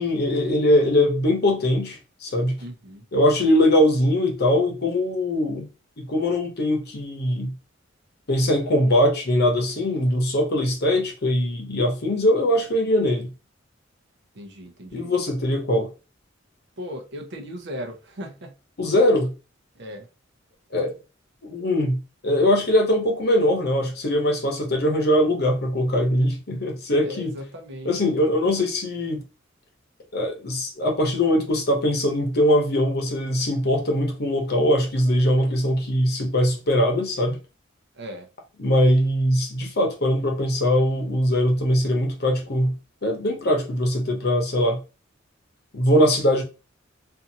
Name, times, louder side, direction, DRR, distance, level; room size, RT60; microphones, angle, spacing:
voice 1, 0.0-2.6 3.1-5.7 6.0-7.5 8.3-13.3 14.9-15.9 18.8-19.3 20.7-20.9 21.5-27.3 27.8-29.2 30.1-37.4 38.6-42.7 43.0-44.8 45.7-46.4, left 1 dB, 55° left, 0.8 m, -21 dB
voice 2, 2.6-3.1 14.3-15.1 16.8-18.6 19.7-20.1 27.0-27.9 37.9-38.3, equal, 60° right, 0.7 m, -37 dB
2.7 x 2.5 x 2.7 m
head